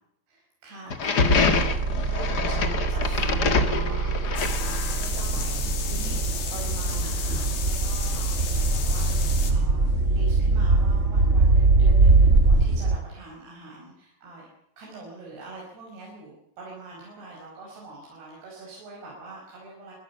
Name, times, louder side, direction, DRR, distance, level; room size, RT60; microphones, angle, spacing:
voice 1, 0.3-1.7 2.0-6.2 6.5-14.5 14.8-19.9, right 2 dB, 75° right, -3 dB, 7.7 m, -43 dB
sound 1, 0.9-5.2, left 4 dB, 50° left, 1.2 m, -25 dB
sound 2, 1.2-12.9, right 3 dB, 50° right, 0.8 m, -22 dB
sound 3, 4.3-9.5, left 7 dB, 80° left, 4.9 m, -34 dB
23.5 x 16.5 x 7.2 m, 0.79 s
omnidirectional pair, 4.7 m